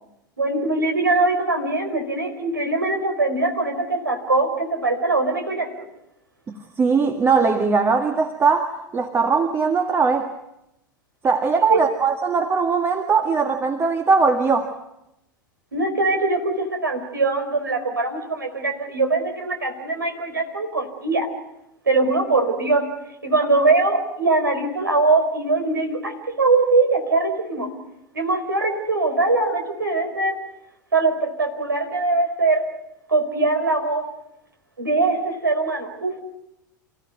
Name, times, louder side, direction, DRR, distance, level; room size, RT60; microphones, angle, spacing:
voice 1, 0.4-5.9 11.7-11.8 15.7-21.3 21.9-22.9 23.2-27.7 28.1-30.4 30.9-32.6 33.1-34.0 34.8-36.2, right 3 dB, 80° right, 6 dB, 4.3 m, -22 dB
voice 2, 6.5-10.3 11.2-14.7, right 5 dB, 20° right, 5 dB, 1.8 m, -20 dB
29.0 x 16.0 x 9.2 m, 0.88 s
figure-of-eight pair, 85°, 11 cm